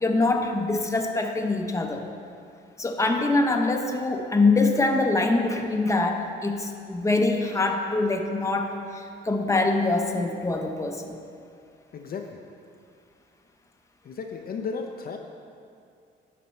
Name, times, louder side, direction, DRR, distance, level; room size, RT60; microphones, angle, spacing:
voice 1, 0.0-2.0 2.8-11.2, left 2 dB, 15° left, 3 dB, 0.7 m, -24 dB
voice 2, 11.9-12.3 14.0-15.2, left 5 dB, 50° left, 3 dB, 0.5 m, -34 dB
11.0 x 4.2 x 4.3 m, 2.5 s
cardioid pair, 90°, 20 cm